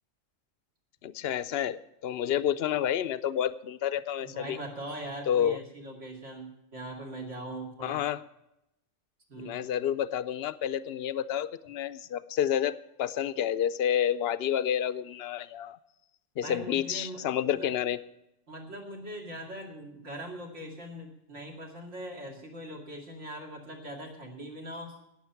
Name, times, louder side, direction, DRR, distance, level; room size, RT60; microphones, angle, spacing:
voice 1, 1.0-4.6 5.3-5.6 7.8-8.2 9.4-15.8 16.4-18.0, left 10 dB, 60° left, 15 dB, 0.7 m, -29 dB
voice 2, 4.2-8.0 9.3-9.7 16.4-17.3 17.5-17.7 18.5-24.9, right 1 dB, 65° right, 2 dB, 2.8 m, -41 dB
18.5 x 7.4 x 5.8 m, 0.85 s
omnidirectional pair, 1.3 m